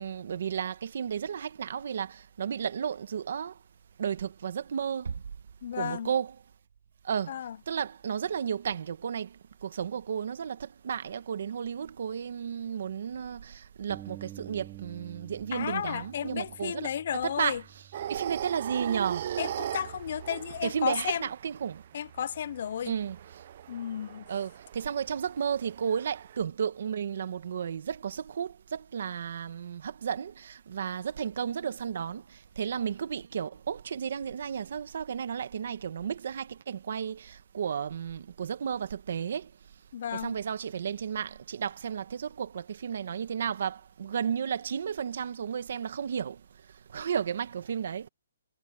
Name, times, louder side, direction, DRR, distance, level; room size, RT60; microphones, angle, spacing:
voice 1, 0.0-3.6 4.0-5.2 5.7-6.3 7.0-7.3 7.7-17.6 18.1-19.3 20.6-21.8 22.8-23.2 24.3-39.5 40.1-46.4 46.9-48.1, right 7 dB, 50° right, 1.4 m, -33 dB
Bass drum, 5.0-6.5, right 6 dB, 80° right, 3.1 m, -41 dB
voice 2, 5.6-6.1 7.3-7.6 15.5-17.6 19.4-21.3 21.9-22.9 23.7-24.3 39.9-40.4, left 9 dB, 40° left, 0.5 m, -33 dB
Bass guitar, 13.9-20.1, right 14 dB, 15° right, 3.0 m, -50 dB
sound 1, 17.9-26.4, right 10 dB, 35° right, 0.6 m, -39 dB
hypercardioid pair, 175°, 0 cm